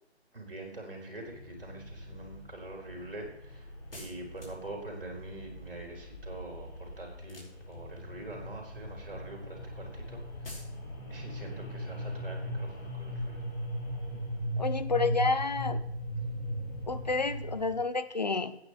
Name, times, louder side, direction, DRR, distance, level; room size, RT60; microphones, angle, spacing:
voice 1, 0.3-10.6 11.1-13.4, right 2 dB, 55° right, 0 dB, 4.4 m, -44 dB
sound 1, 1.3-17.8, equal, 20° left, 2.3 m, -39 dB
sound 2, 3.9-4.8 7.2-8.0 10.4-10.8, left 1 dB, 55° left, 4.6 m, -48 dB
voice 2, 14.6-15.8 16.9-18.6, left 3 dB, 40° left, 11 dB, 0.8 m, -30 dB
15.5 x 9.6 x 3.2 m, 0.79 s
figure-of-eight pair, 155°, 34 cm